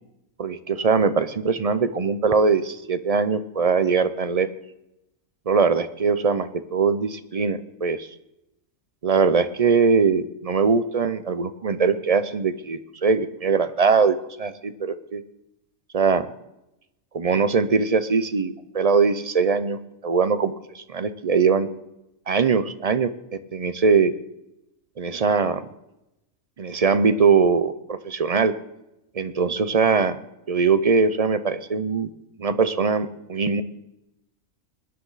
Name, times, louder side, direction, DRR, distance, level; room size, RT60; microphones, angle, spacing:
voice 1, 0.4-4.5 5.5-8.1 9.0-15.2 15.9-16.3 17.1-21.7 22.3-23.1 23.5-24.1 25.0-25.6 26.6-28.5 29.1-30.2 30.5-32.1 32.4-33.6, right 5 dB, 45° right, 12 dB, 0.5 m, -21 dB
21.5 x 10.5 x 4.0 m, 0.90 s
omnidirectional pair, 1.4 m